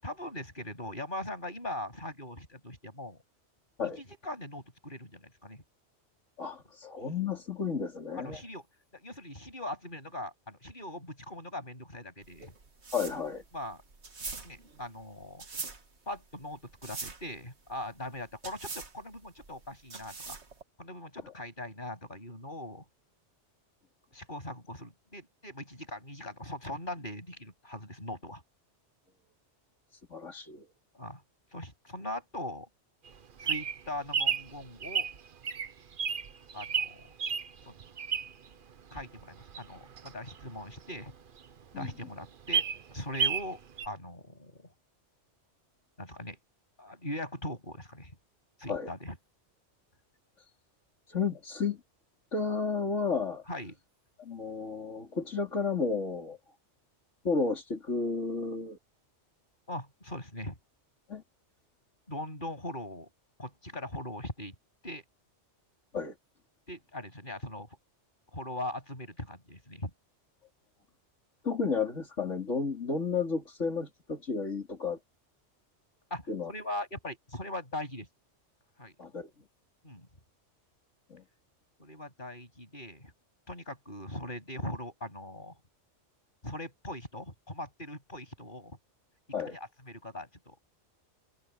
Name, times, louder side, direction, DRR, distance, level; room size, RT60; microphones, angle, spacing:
voice 1, 0.0-3.2 4.0-5.6 8.2-8.6 8.9-12.5 13.5-13.8 14.4-15.4 16.1-20.4 20.8-22.8 24.1-28.4 30.9-31.2 31.5-32.7 33.4-35.1 36.5-37.1 37.7-37.8 38.9-41.1 41.7-42.6 42.9-44.7 46.0-46.4 46.8-48.1 48.6-49.1 53.5-53.7 59.7-60.6 62.1-63.1 63.4-64.5 64.8-65.0 66.7-67.7 68.3-69.9 76.1-78.1 78.8-78.9 79.8-80.1 81.8-83.1 83.5-85.5 86.4-88.8 89.5-90.6, left 1 dB, 45° left, 8.4 m, -40 dB
voice 2, 6.4-8.4 12.9-13.4 30.1-30.6 41.7-41.9 48.7-48.9 51.1-51.8 52.3-53.4 54.2-56.4 57.2-58.8 61.1-61.2 65.9-66.1 71.4-75.0 76.3-76.5 79.0-79.3 81.1-81.2 89.3-89.6, left 5 dB, 85° left, 3.9 m, -32 dB
sound 1, 12.2-20.6, right 4 dB, 65° right, 2.2 m, -43 dB
Bird vocalization bird call bird song, 33.1-38.5 39.0-41.1 41.5-41.6 41.8-41.9 42.3-43.5 43.8-43.9, right 6 dB, 50° right, 1.0 m, -32 dB
omnidirectional pair, 1.2 m